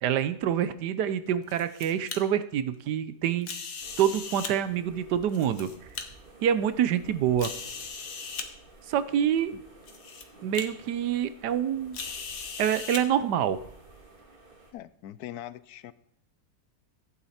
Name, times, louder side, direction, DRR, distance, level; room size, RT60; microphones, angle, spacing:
voice 1, 0.0-3.5 4.0-5.7 6.4-7.5 8.9-9.5 10.4-12.0 12.6-13.6, right 9 dB, 70° right, 13 dB, 1.3 m, -26 dB
sound 1, 1.3-2.2 3.4-4.5 5.2-6.0 6.7-6.8 7.4-8.5 9.4-9.5 9.9-10.2 10.5-10.7 11.9-13.0, left 5 dB, 55° left, 1.5 m, -38 dB
sound 2, 3.8-14.7, right 3 dB, 30° right, 1.8 m, -53 dB
voice 2, 14.7-15.9, left 12 dB, 70° left, 16 dB, 1.0 m, -41 dB
15.5 x 9.1 x 4.2 m, 0.69 s
omnidirectional pair, 1.9 m